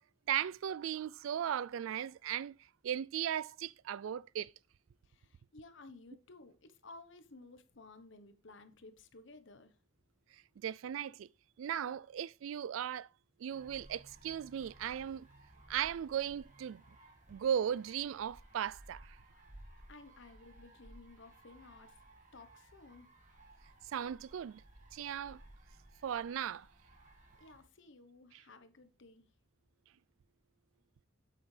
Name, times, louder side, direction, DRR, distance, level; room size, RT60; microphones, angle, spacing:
voice 1, 0.3-2.6 2.8-4.5 10.6-11.3 11.6-13.1 13.4-15.3 15.7-16.8 17.3-19.2 23.9-24.6 24.9-25.4 26.0-26.7, right 9 dB, 85° right, 0.3 m, -37 dB
voice 2, 5.0-9.8 19.5-22.0 22.3-23.1 27.4-29.3, left 3 dB, 65° left, 1.1 m, -56 dB
Wild Geese, 13.5-27.6, right 1 dB, 40° right, 2.6 m, -59 dB
8.6 x 8.1 x 3.3 m
head